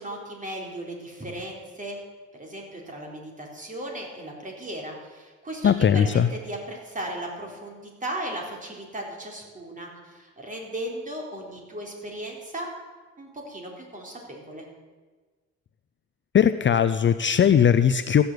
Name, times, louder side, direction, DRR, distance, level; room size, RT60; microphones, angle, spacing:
voice 1, 0.0-2.0 2.3-12.7 13.2-14.7, right 1 dB, 25° right, 0 dB, 3.7 m, -36 dB
voice 2, 5.6-6.3 16.3-18.2, left 8 dB, 40° left, 12 dB, 0.5 m, -19 dB
14.5 x 6.9 x 7.9 m, 1.3 s
cardioid pair, 90°, 30 cm